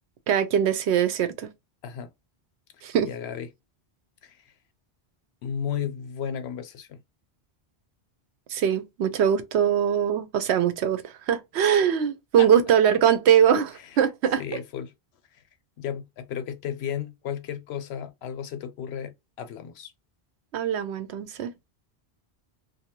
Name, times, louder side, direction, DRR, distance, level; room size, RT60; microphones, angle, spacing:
voice 1, 0.3-1.5 2.8-3.1 8.5-14.4 20.5-21.5, right 8 dB, 85° right, 0.9 m, -22 dB
voice 2, 2.7-3.5 4.2-4.5 5.4-7.0 12.4-12.5 13.8-13.9 14.4-14.9 15.3-15.4 15.8-19.9, left 8 dB, 80° left, 0.8 m, -34 dB
2.6 x 2.3 x 2.9 m
omnidirectional pair, 1.1 m